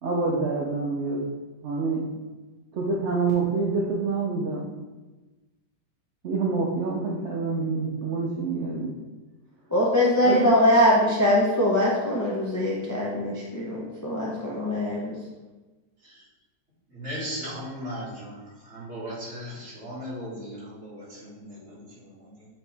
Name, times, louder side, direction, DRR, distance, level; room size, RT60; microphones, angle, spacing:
voice 1, 0.0-1.3 1.6-2.1 2.7-4.7 6.2-8.9 10.2-10.5, right 3 dB, 55° right, -3 dB, 0.8 m, -27 dB
voice 2, 9.7-15.2, left 1 dB, 20° left, -5 dB, 0.5 m, -22 dB
voice 3, 16.9-22.5, equal, 40° right, -8 dB, 2.1 m, -37 dB
7.2 x 3.9 x 3.4 m, 1.2 s
omnidirectional pair, 1.9 m